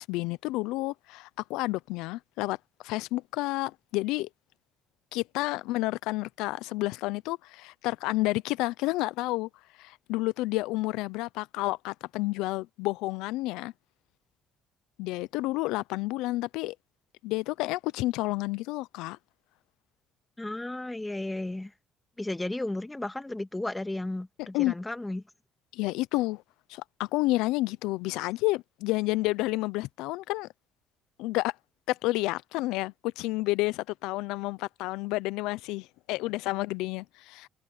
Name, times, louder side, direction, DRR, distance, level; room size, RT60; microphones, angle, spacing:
voice 1, 0.0-2.6 2.8-4.3 5.1-9.5 9.8-13.7 15.0-16.7 17.2-19.2 24.5-24.7 25.7-26.4 26.7-30.5 31.2-31.5 31.9-37.5, left 20 dB, 85° left, 0.6 m, -30 dB
voice 2, 20.4-21.7 22.2-25.2, left 2 dB, 10° left, 1.8 m, -34 dB
supercardioid pair, 75°, 0 cm